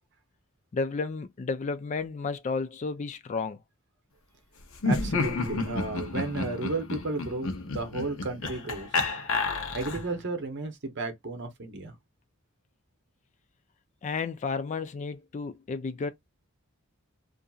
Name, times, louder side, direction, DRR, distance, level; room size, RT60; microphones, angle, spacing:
voice 1, 0.7-3.6 14.0-16.1, left 4 dB, 35° left, 0.3 m, -32 dB
Laughter, 4.8-10.2, left 3 dB, 65° left, 0.7 m, -30 dB
voice 2, 4.8-8.9 9.7-11.9, right 3 dB, 55° right, 0.8 m, -33 dB
2.8 x 2.5 x 2.3 m
head